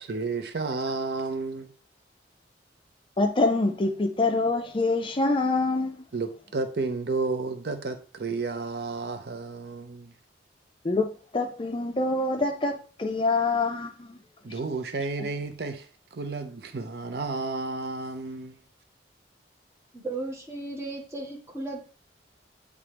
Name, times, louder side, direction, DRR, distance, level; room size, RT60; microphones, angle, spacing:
voice 1, 0.0-1.7 6.1-10.1 14.4-18.6, right 3 dB, 60° right, 0.5 m, -32 dB
voice 2, 3.2-5.9 10.9-11.1 11.3-12.7 13.0-13.9, left 3 dB, 30° left, 0.4 m, -25 dB
voice 3, 19.9-21.8, right 2 dB, 15° right, 1.5 m, -35 dB
8.4 x 3.3 x 3.4 m
head